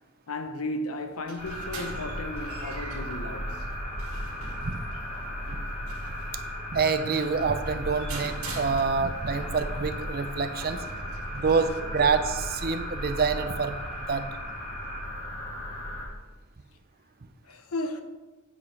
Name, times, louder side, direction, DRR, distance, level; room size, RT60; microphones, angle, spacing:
voice 1, 0.3-3.7 9.9-10.2 17.4-18.0, left 2 dB, 85° left, 0.8 m, -35 dB
sound 1, 0.9-9.3, right 3 dB, 80° right, 2.5 m, -44 dB
sound 2, 1.4-16.1, equal, 35° left, 2.7 m, -35 dB
voice 2, 6.7-10.8 11.3-13.7 14.1-14.3, right 5 dB, 45° right, 0.6 m, -27 dB
8.9 x 8.5 x 3.3 m
head